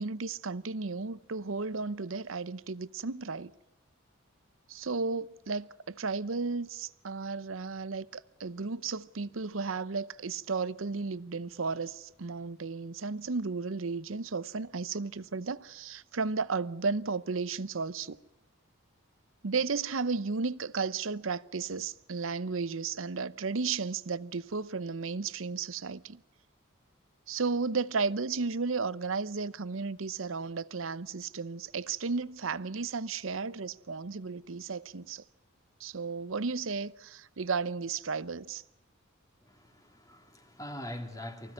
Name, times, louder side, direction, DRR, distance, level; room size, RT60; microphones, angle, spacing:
voice 1, 0.0-3.5 4.7-18.2 19.4-26.2 27.3-35.2 35.8-38.6, right 4 dB, 70° right, 0.8 m, -34 dB
voice 2, 39.4-41.5, left 1 dB, 15° left, 2.8 m, -43 dB
24.5 x 15.5 x 9.7 m
head